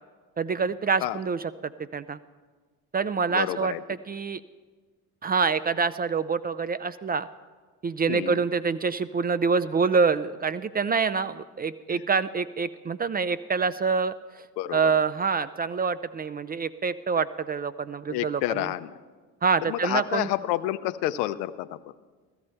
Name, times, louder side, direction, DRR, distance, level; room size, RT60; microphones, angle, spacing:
voice 1, 0.4-2.2 2.9-4.4 5.2-7.3 7.8-14.4 14.7-18.7 19.4-20.3, right 5 dB, 20° right, 14 dB, 0.3 m, -26 dB
voice 2, 3.3-3.8 8.1-8.4 11.9-12.0 14.6-14.8 18.1-18.9 19.7-21.8, left 14 dB, 80° left, 13 dB, 0.6 m, -29 dB
15.0 x 14.0 x 4.3 m, 1.4 s
hypercardioid pair, 55°, 47 cm